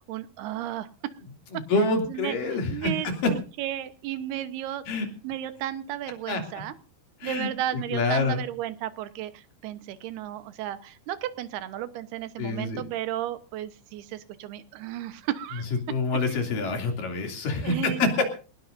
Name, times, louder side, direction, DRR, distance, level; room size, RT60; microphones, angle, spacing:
voice 1, 0.1-1.2 1.5-1.6 2.1-4.9 5.2-6.7 7.2-15.7 17.6-18.2, right 12 dB, 90° right, 12 dB, 3.1 m, -34 dB
voice 2, 1.5-2.9 3.2-3.3 4.9-5.1 6.3-6.4 7.2-7.5 7.9-8.4 12.4-12.8 15.9-18.1, left 3 dB, 60° left, 4 dB, 4.3 m, -26 dB
22.5 x 19.5 x 2.6 m, 0.37 s
omnidirectional pair, 4.4 m